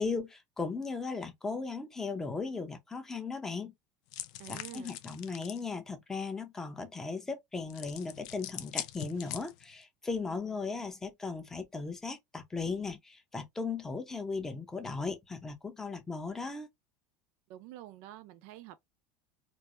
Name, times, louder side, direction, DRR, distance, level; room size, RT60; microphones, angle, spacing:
voice 1, 0.0-3.7 4.5-16.7, left 4 dB, 10° left, 0.7 m, -37 dB
sound 1, 4.1-5.6 7.7-9.8, left 14 dB, 70° left, 0.5 m, -42 dB
voice 2, 4.4-5.0 17.5-18.8, right 14 dB, 60° right, 0.5 m, -48 dB
4.5 x 2.0 x 2.5 m
supercardioid pair, 150°, 4 cm